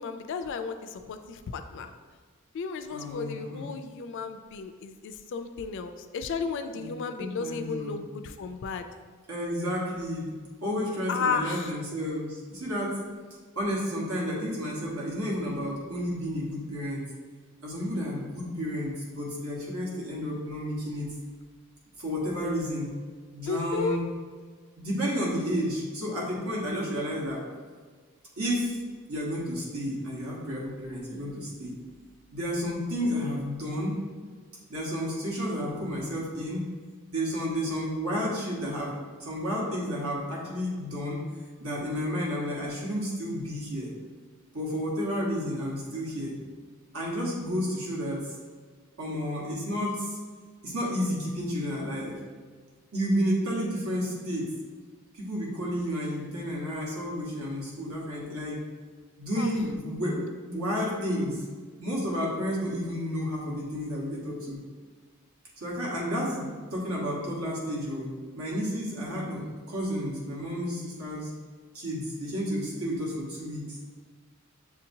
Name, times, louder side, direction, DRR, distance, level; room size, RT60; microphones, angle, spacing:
voice 1, 0.0-1.9 2.5-8.9 11.1-11.8 23.5-24.0 59.4-59.5, left 5 dB, 55° left, 9 dB, 0.3 m, -33 dB
voice 2, 2.9-3.7 6.7-6.9 7.2-8.0 9.3-10.3 10.6-13.0 13.5-17.0 17.6-21.1 22.0-22.9 23.3-24.0 24.8-27.4 28.4-28.8 29.1-31.7 32.3-34.0 34.7-36.7 37.1-41.2 41.6-43.9 44.5-46.4 46.9-48.3 49.0-50.2 50.6-52.2 52.9-54.5 55.1-58.6 59.2-61.5 61.8-64.6 65.6-71.3 71.7-73.8, equal, 75° right, -4 dB, 1.2 m, -31 dB
7.0 x 2.8 x 2.6 m, 1.5 s
head